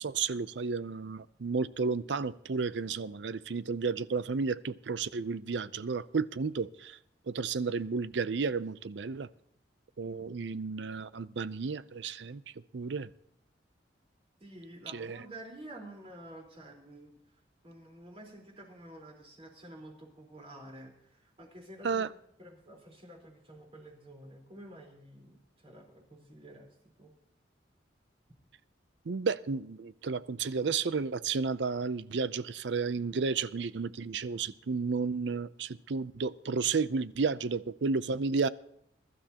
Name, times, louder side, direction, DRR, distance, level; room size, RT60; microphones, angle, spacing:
voice 1, 0.0-7.0 7.3-9.3 10.0-12.4 12.7-13.1 14.9-15.2 21.8-22.1 29.1-38.5, right 4 dB, 75° right, 16 dB, 0.6 m, -32 dB
voice 2, 14.4-17.2 17.6-22.0 22.4-27.1, right 1 dB, 35° right, 0 dB, 4.2 m, -50 dB
22.0 x 12.5 x 2.9 m, 0.73 s
head